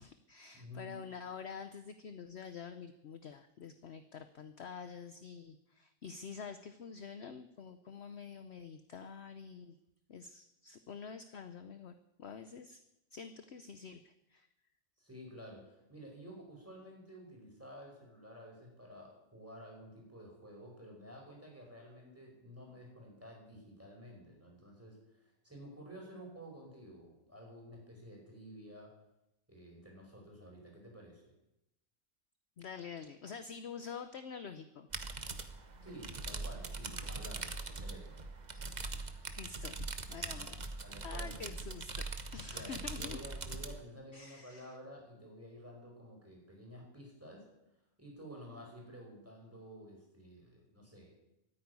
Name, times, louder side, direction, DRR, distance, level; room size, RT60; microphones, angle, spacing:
voice 1, 0.0-9.8 10.1-12.8 13.1-14.5 32.6-34.9 38.5-38.6 39.2-40.7 41.0-42.1 42.3-43.2 44.1-44.8, left 6 dB, 55° left, 10 dB, 0.9 m, -47 dB
voice 2, 0.5-0.9 15.0-28.9 29.5-31.3 35.8-38.3 40.2-41.6 42.4-47.5 48.0-51.1, equal, 10° right, -1 dB, 5.1 m, -52 dB
sound 1, 34.9-43.8, right 3 dB, 35° right, 1.1 m, -42 dB
13.5 x 9.4 x 9.6 m, 0.89 s
omnidirectional pair, 1.6 m